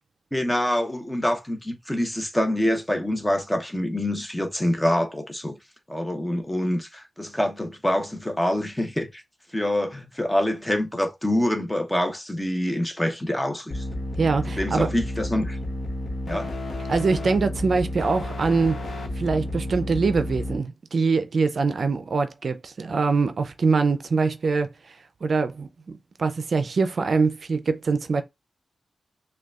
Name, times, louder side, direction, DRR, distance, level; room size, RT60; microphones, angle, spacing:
voice 1, 0.3-5.6 5.9-9.2 9.5-13.8 14.3-15.6 16.3-16.5, left 1 dB, 10° left, 0.8 m, -26 dB
sound 1, 13.7-20.6, left 1 dB, 75° left, 0.9 m, -31 dB
voice 2, 14.2-14.9 16.9-18.8 19.1-25.7 26.2-28.2, right 4 dB, 65° right, 0.4 m, -23 dB
6.2 x 2.3 x 2.4 m
cardioid pair, 70°, 0 cm